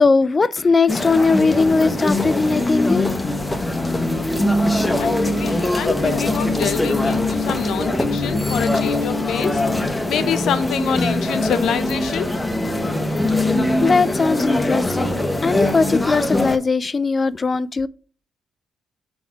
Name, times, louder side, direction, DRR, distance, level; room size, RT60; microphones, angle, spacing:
voice 1, 0.0-3.1 13.8-17.9, left 4 dB, 30° left, 0.4 m, -19 dB
sound 1, 0.9-16.6, left 1 dB, 15° left, 0.8 m, -22 dB
voice 2, 5.0-12.3, left 8 dB, 75° left, 0.6 m, -26 dB
4.8 x 4.2 x 5.8 m
cardioid pair, 90°, 0 cm